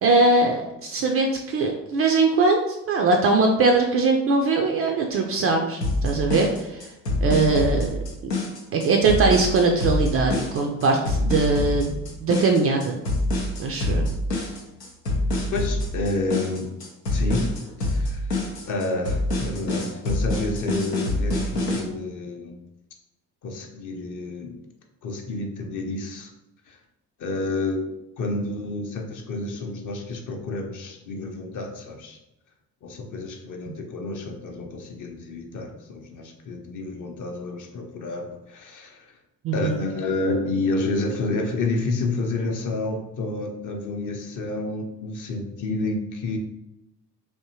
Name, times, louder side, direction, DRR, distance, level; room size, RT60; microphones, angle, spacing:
voice 1, 0.0-6.9 7.2-7.9 8.7-13.0 13.6-14.1 33.7-33.8 39.4-39.8, right 3 dB, 30° right, 2 dB, 0.4 m, -21 dB
sound 1, 5.8-21.8, left 1 dB, 90° left, 0.6 m, -26 dB
voice 2, 15.5-16.7 17.1-17.5 17.8-18.3 18.7-22.6 23.4-24.5 25.0-26.3 26.7-26.8 27.2-32.2 32.8-39.0 39.5-46.4, left 2 dB, 40° left, 2 dB, 0.7 m, -29 dB
3.5 x 2.6 x 2.8 m, 0.91 s
figure-of-eight pair, 45°, 47 cm